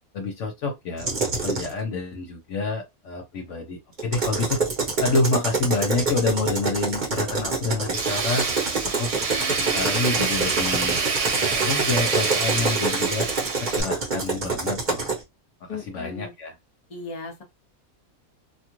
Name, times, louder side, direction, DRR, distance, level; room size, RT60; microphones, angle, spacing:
voice 1, 0.1-4.6 5.0-8.5 8.8-9.1 9.7-13.3 13.6-15.1 15.6-16.5, left 3 dB, 65° left, 0.9 m, -28 dB
sound 1, 1.0-1.7 4.0-15.2, right 4 dB, 35° right, 1.0 m, -27 dB
Tools, 7.9-13.8, right 4 dB, 60° right, 1.0 m, -26 dB
voice 2, 15.7-16.3 16.9-17.4, left 4 dB, 30° left, 0.8 m, -36 dB
2.5 x 2.4 x 2.9 m
omnidirectional pair, 1.5 m